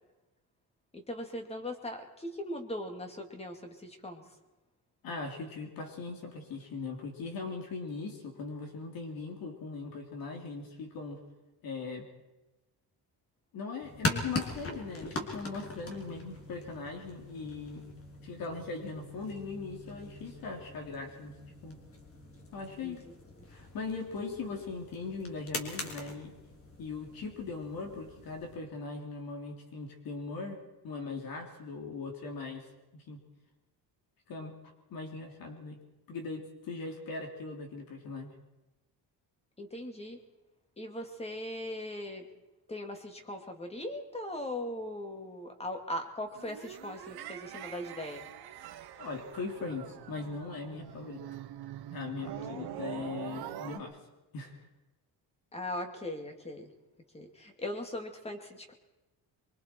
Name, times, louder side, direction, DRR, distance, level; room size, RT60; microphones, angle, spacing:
voice 1, 0.9-4.2 22.8-22.9 23.4-23.5 39.6-40.2 40.8-42.3 42.7-48.2 52.2-52.7 55.5-56.7 57.1-58.7, left 1 dB, 15° left, 5 dB, 2.5 m, -39 dB
voice 2, 5.0-11.2 11.6-12.1 13.5-17.9 18.2-21.3 21.6-21.8 22.5-23.0 23.5-26.3 26.8-33.2 34.3-34.6 34.9-35.8 36.1-38.3 49.0-51.2 51.9-54.0 54.3-54.6, left 4 dB, 60° left, 3 dB, 3.3 m, -40 dB
sound 1, 13.8-28.6, left 2 dB, 35° left, 3.1 m, -41 dB
sound 2, 46.3-53.8, right 11 dB, 70° right, 1.6 m, -44 dB
24.5 x 24.5 x 4.6 m, 1.1 s
cardioid pair, 170°, 40 cm